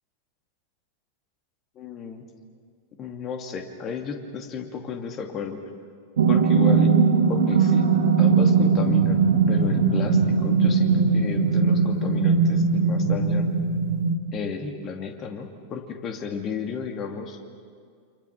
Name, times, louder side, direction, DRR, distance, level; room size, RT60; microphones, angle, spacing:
voice 1, 1.8-2.2 3.0-5.6 6.3-7.0 7.3-7.9 8.2-9.2 9.5-13.5 14.3-17.4, left 6 dB, 30° left, 4 dB, 2.7 m, -33 dB
sound 1, 6.2-14.2, right 5 dB, 60° right, 2.1 m, -20 dB
29.0 x 27.0 x 6.0 m, 2.2 s
figure-of-eight pair, 90°, 0 cm